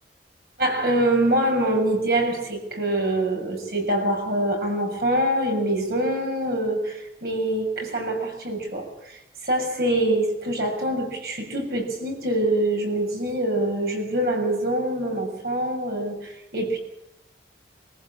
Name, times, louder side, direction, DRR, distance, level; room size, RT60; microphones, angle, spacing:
voice 1, 0.6-16.8, right 1 dB, 60° right, 2 dB, 6.9 m, -25 dB
24.0 x 15.0 x 8.8 m, 0.86 s
head